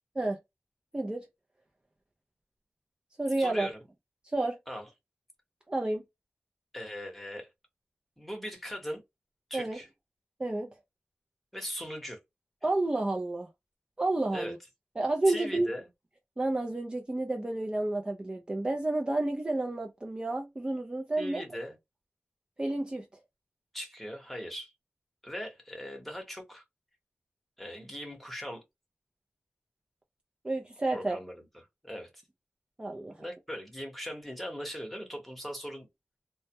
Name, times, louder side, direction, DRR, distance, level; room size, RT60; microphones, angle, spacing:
voice 1, 0.9-1.2 3.2-3.7 4.2-4.6 5.7-6.0 9.5-9.8 10.4-10.7 12.6-13.5 14.0-14.6 15.0-15.7 16.4-21.6 22.6-23.1 30.4-31.2 32.8-33.2, right 2 dB, 25° right, 0.4 m, -30 dB
voice 2, 3.4-3.8 4.7-4.8 6.7-7.5 8.2-9.0 9.5-9.9 11.5-12.2 14.3-14.5 15.3-15.9 21.2-21.7 23.7-24.7 25.2-26.6 27.6-28.6 30.9-31.3 31.8-32.1 33.2-35.9, equal, ahead, 1.0 m, -39 dB
2.2 x 2.0 x 2.7 m
wide cardioid pair, 75°, 4 cm